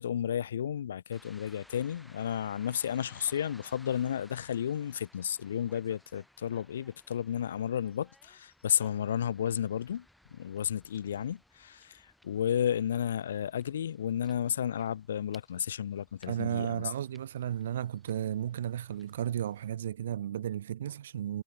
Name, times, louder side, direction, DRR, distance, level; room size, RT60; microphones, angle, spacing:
voice 1, 0.0-10.0 10.3-16.9, left 9 dB, 85° left, 1.5 m, -32 dB
sound 1, 1.1-19.7, left 1 dB, ahead, 6.0 m, -61 dB
voice 2, 16.3-21.4, right 10 dB, 75° right, 1.1 m, -34 dB
hypercardioid pair, 145°, 0 cm